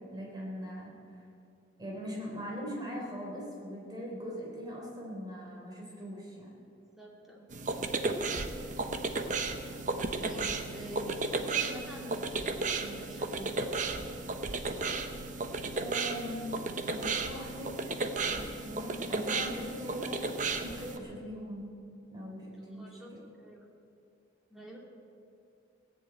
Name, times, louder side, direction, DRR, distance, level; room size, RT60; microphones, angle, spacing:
voice 1, 0.1-1.2 1.8-6.5 15.8-17.7 18.2-20.3 20.6-21.7 22.1-23.2, equal, 20° right, -4 dB, 3.7 m, -41 dB
voice 2, 7.0-7.5 10.2-12.2 12.7-14.1 22.7-23.1 23.4-23.6 24.5-24.8, right 1 dB, ahead, -3 dB, 2.6 m, -46 dB
sound 1, 7.5-21.0, right 3 dB, 40° right, 0.9 m, -34 dB
17.5 x 7.6 x 9.0 m, 2.5 s
head